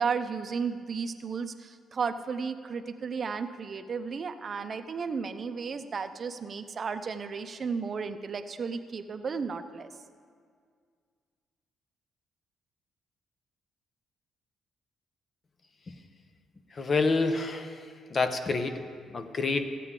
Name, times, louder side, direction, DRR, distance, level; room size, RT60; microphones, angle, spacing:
voice 1, 0.0-9.9, right 5 dB, 45° right, 9 dB, 0.6 m, -33 dB
voice 2, 16.8-17.7 18.1-18.8 19.1-19.7, left 3 dB, 40° left, 8 dB, 0.8 m, -27 dB
15.5 x 8.4 x 3.7 m, 2.1 s
cardioid pair, 90°, 0 cm